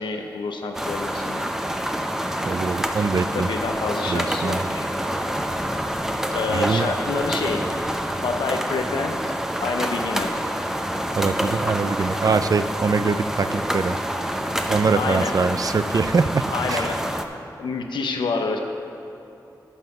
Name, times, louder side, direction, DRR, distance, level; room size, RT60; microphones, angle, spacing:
voice 1, 0.0-1.5 3.3-4.9 6.3-7.6 8.2-9.2 9.6-10.4 14.9-15.3 16.5-17.0 17.6-18.6, left 4 dB, 90° left, 4 dB, 0.6 m, -27 dB
sound 1, 0.7-17.2, equal, 5° right, 0.7 m, -27 dB
voice 2, 2.4-3.5 4.1-4.6 6.5-6.9 11.1-14.0 14.7-17.0, right 4 dB, 50° right, 12 dB, 0.4 m, -23 dB
11.0 x 4.2 x 6.7 m, 2.7 s
cardioid pair, 40°, 8 cm